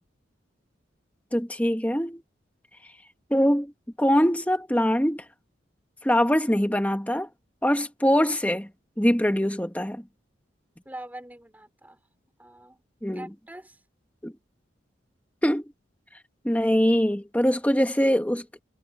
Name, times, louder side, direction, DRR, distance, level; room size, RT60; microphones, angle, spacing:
voice 1, 1.3-2.2 3.3-3.7 4.0-5.2 6.0-7.3 7.6-8.7 9.0-10.0 13.0-13.3 14.2-14.3 15.4-15.7 16.4-18.6, equal, 10° left, 1.5 m, -23 dB
voice 2, 10.8-12.0 12.4-12.8 13.1-13.8, right 1 dB, 10° right, 5.0 m, -43 dB
head